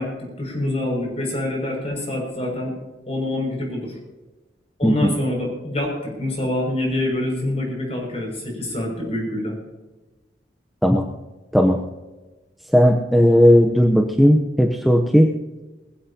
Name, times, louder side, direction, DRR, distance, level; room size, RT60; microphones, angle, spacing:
voice 1, 0.0-2.7 3.1-4.0 4.8-9.5, left 1 dB, 35° left, 0 dB, 6.5 m, -26 dB
voice 2, 12.7-15.3, equal, ahead, 3 dB, 0.8 m, -15 dB
21.0 x 16.0 x 2.9 m, 1.2 s
head